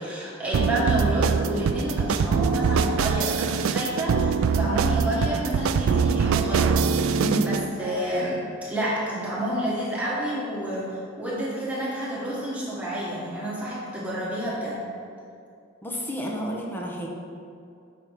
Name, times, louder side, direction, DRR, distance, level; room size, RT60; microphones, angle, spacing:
voice 1, 0.0-14.8, right 1 dB, 5° right, -8 dB, 1.3 m, -29 dB
sound 1, 0.5-7.7, right 6 dB, 80° right, 0.3 m, -23 dB
voice 2, 7.2-7.5 15.8-17.1, equal, 10° left, -2 dB, 0.9 m, -30 dB
7.2 x 5.3 x 4.6 m, 2.5 s
head